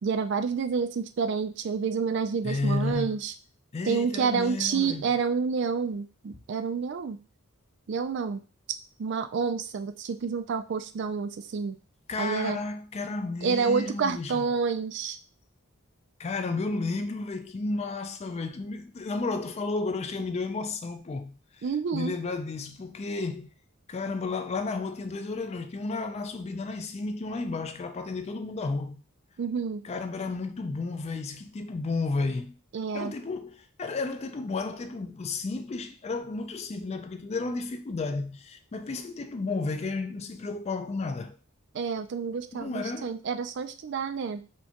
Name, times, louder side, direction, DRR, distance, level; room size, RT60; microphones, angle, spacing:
voice 1, 0.0-3.3 3.9-7.2 7.9-8.4 9.0-11.8 12.2-12.6 13.4-15.2 21.6-22.1 29.4-29.8 32.7-33.1 41.7-44.4, right 5 dB, 55° right, 0.3 m, -29 dB
voice 2, 2.4-3.2 3.7-5.2 12.1-14.5 16.2-21.7 21.9-23.5 23.9-29.0 29.8-32.6 32.9-41.4 42.5-43.1, left 3 dB, 30° left, 0.3 m, -32 dB
4.4 x 2.3 x 2.9 m
head